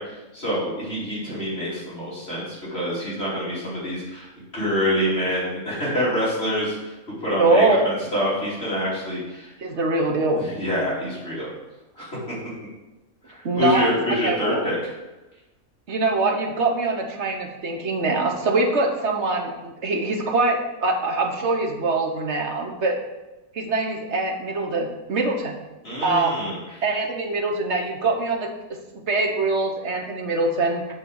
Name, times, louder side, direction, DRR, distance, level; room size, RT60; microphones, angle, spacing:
voice 1, 0.0-6.9 7.2-9.5 10.4-11.5 11.9-12.3 13.3-14.9 25.8-26.6, equal, 40° left, -9 dB, 3.1 m, -26 dB
voice 2, 7.4-7.9 9.6-10.5 13.4-14.0 14.2-14.7 15.9-23.0 23.5-25.6 26.0-26.4 26.8-28.5 29.1-30.8, right 3 dB, 50° right, 1 dB, 1.3 m, -23 dB
9.0 x 4.4 x 6.3 m, 1.1 s
omnidirectional pair, 1.6 m